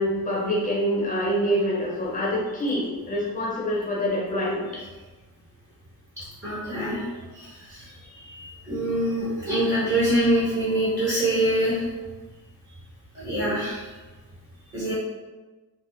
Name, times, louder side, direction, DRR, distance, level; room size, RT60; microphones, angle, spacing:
voice 1, 0.0-4.6, equal, 20° left, -6 dB, 0.7 m, -25 dB
voice 2, 6.4-7.1 7.3-11.8 13.1-13.8 14.7-14.9, right 1 dB, 30° right, -11 dB, 1.1 m, -25 dB
3.6 x 2.1 x 2.6 m, 1.2 s
wide cardioid pair, 155°, 37 cm